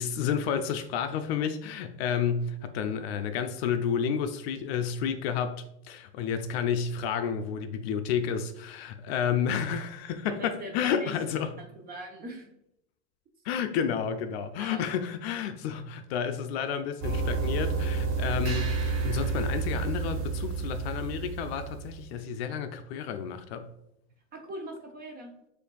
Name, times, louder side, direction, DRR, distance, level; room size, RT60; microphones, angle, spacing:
voice 1, 0.0-11.5 13.4-23.7, left 7 dB, 60° left, 0.5 m, -31 dB
voice 2, 10.2-12.5 14.6-14.9 24.3-25.3, right 1 dB, 25° right, 0.7 m, -41 dB
sound 1, 17.0-22.1, right 4 dB, 45° right, 1.5 m, -30 dB
6.4 x 2.6 x 2.3 m
supercardioid pair, 125°, 36 cm